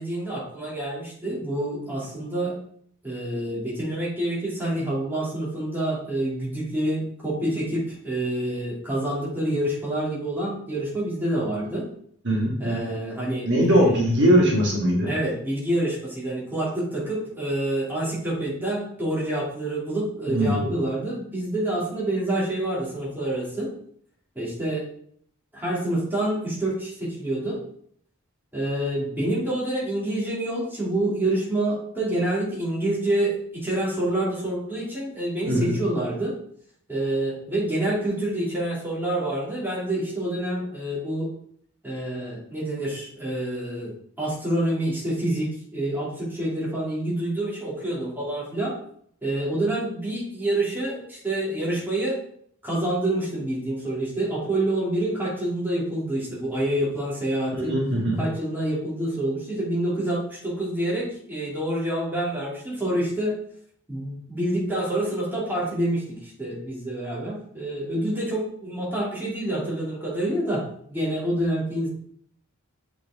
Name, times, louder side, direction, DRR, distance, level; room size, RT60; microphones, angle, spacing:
voice 1, 0.0-2.5 3.0-11.9 12.6-14.0 15.0-23.7 24.3-24.8 25.5-27.6 28.5-36.3 36.9-41.3 41.8-48.7 49.2-52.2 52.6-57.8 58.2-63.3 63.9-70.6 70.9-71.9, right 1 dB, 10° right, -7 dB, 2.8 m, -27 dB
voice 2, 12.2-12.9 13.4-15.1 20.3-20.7 35.5-35.7 57.5-58.2, equal, 55° right, -3 dB, 1.9 m, -21 dB
7.8 x 4.7 x 3.7 m, 0.64 s
head